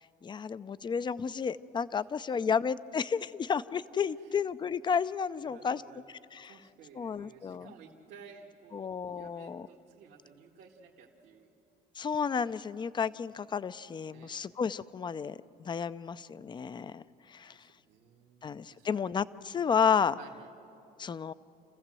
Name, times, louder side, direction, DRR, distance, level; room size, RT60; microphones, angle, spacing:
voice 1, 0.2-5.8 6.3-6.5 7.0-7.7 8.7-9.7 12.0-17.0 17.3-17.5 18.4-20.2 21.0-21.3, left 6 dB, 25° left, 16 dB, 0.5 m, -32 dB
voice 2, 5.4-6.0 6.4-11.5 14.1-14.4 17.5-19.0 20.2-20.5, right 6 dB, 80° right, -3 dB, 1.8 m, -55 dB
28.5 x 15.0 x 7.6 m, 2.9 s
cardioid pair, 110°, 17 cm